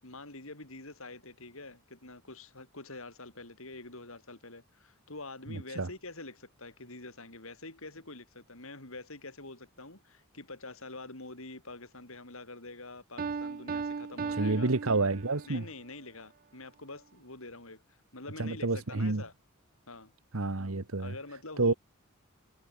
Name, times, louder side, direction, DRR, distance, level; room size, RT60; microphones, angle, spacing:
voice 1, 0.0-14.7 15.5-19.3 19.9-20.1 21.0-21.8, left 2 dB, 65° left, 5.9 m, -46 dB
voice 2, 5.5-5.9 14.3-15.6 18.4-19.2 20.3-21.1 21.6-21.7, right 3 dB, 70° right, 1.3 m, -29 dB
Piano, 13.2-15.6, right 5 dB, 40° right, 0.4 m, -37 dB
head